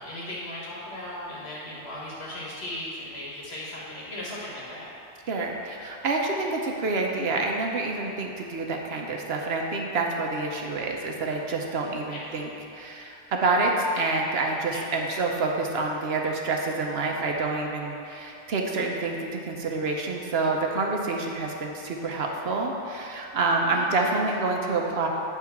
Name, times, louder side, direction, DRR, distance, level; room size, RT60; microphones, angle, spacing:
voice 1, 0.0-4.9 12.1-12.3 14.7-14.9 23.6-24.2, left 1 dB, 65° left, -6 dB, 1.9 m, -37 dB
voice 2, 5.3-25.1, right 3 dB, 65° right, 1 dB, 1.0 m, -27 dB
9.2 x 3.6 x 5.8 m, 2.8 s
omnidirectional pair, 1.2 m